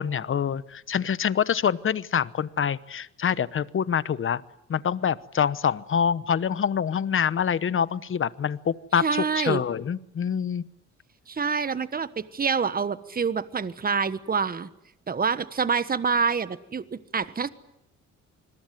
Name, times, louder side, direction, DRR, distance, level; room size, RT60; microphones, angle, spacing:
voice 1, 0.0-4.4 4.7-10.6, left 7 dB, 45° left, 17 dB, 1.0 m, -26 dB
voice 2, 9.0-9.6 11.3-14.7 15.1-17.5, right 5 dB, 30° right, 14 dB, 1.3 m, -26 dB
27.5 x 21.5 x 9.3 m, 0.81 s
cardioid pair, 90°, 30 cm